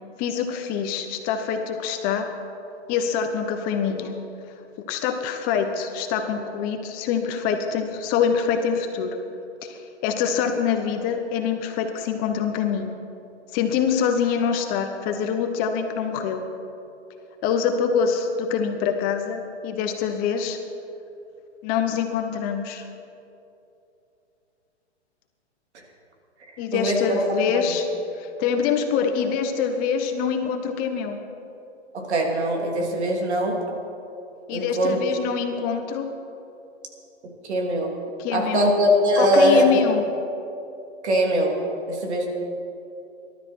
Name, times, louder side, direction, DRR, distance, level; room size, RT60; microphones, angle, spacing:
voice 1, 0.2-2.2 2.9-4.1 4.9-9.1 9.6-13.0 13.5-16.4 17.4-20.6 21.6-22.8 26.6-27.8 28.2-31.2 34.5-36.1 38.2-38.7 39.2-40.1, left 7 dB, 25° left, 6 dB, 1.0 m, -25 dB
voice 2, 26.7-27.6 31.9-33.6 34.5-35.0 37.4-37.9 38.3-39.7 41.0-41.6 41.9-42.3, equal, 70° right, 1 dB, 3.2 m, -21 dB
19.5 x 12.5 x 4.6 m, 2.8 s
hypercardioid pair, 145°, 34 cm